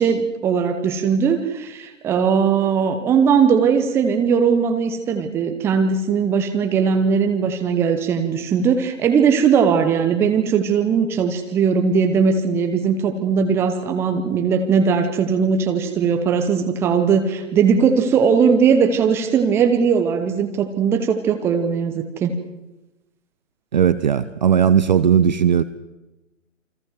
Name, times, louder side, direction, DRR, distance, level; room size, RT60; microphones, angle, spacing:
voice 1, 0.0-22.3, right 6 dB, 5° right, 6 dB, 0.8 m, -19 dB
voice 2, 23.7-25.6, right 8 dB, 35° right, 14 dB, 0.7 m, -17 dB
29.0 x 24.5 x 4.7 m, 0.99 s
figure-of-eight pair, 135°, 40 cm